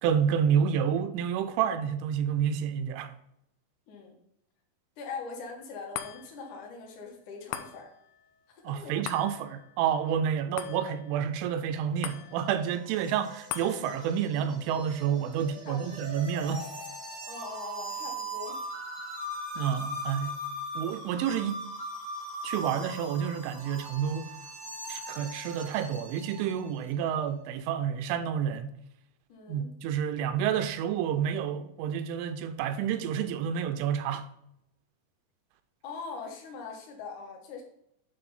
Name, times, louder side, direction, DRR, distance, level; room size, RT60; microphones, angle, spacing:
voice 1, 0.0-3.1 8.6-16.7 19.6-20.4 20.8-21.7 22.4-24.3 24.9-28.7 29.5-34.3, right 8 dB, 90° right, 3.1 m, -29 dB
voice 2, 5.0-7.9 8.5-9.0 15.6-16.0 17.2-18.6 29.3-29.7 35.8-37.6, left 4 dB, 75° left, 1.8 m, -42 dB
sound 1, 5.9-18.5 19.0-19.1, left 11 dB, 90° left, 2.4 m, -45 dB
sound 2, 12.1-26.7, equal, 65° right, 0.6 m, -40 dB
9.0 x 3.3 x 5.3 m
omnidirectional pair, 5.5 m